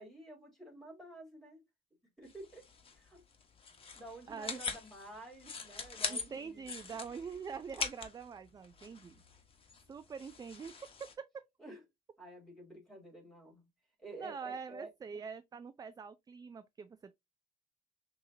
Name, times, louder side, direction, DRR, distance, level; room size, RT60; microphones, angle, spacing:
voice 1, 0.0-1.6 2.2-2.6 2.9-3.2 3.9-6.7 11.6-11.8 12.2-13.7 14.0-14.9, right 2 dB, ahead, 3.3 m, -51 dB
sound 1, 2.3-11.1, left 5 dB, 35° left, 1.2 m, -43 dB
voice 2, 4.3-4.6 6.1-9.2 9.9-11.3 14.2-17.1, right 6 dB, 20° right, 0.4 m, -44 dB
6.1 x 2.9 x 2.7 m
cardioid pair, 110°, 17 cm